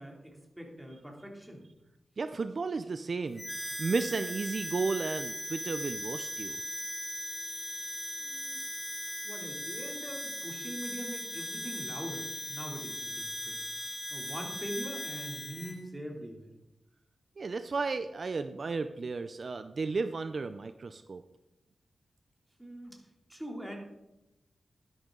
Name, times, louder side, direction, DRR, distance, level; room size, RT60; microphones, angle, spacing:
voice 1, 0.0-1.6 8.2-8.6 9.2-16.5 22.6-23.0 23.3-23.8, equal, 5° right, 0 dB, 2.9 m, -43 dB
voice 2, 2.2-6.6 17.4-21.2, right 4 dB, 55° right, 10 dB, 0.5 m, -33 dB
Harmonica, 3.4-15.8, equal, 15° left, 1.6 m, -38 dB
12.0 x 11.0 x 3.8 m, 0.93 s
wide cardioid pair, 80°, 0 cm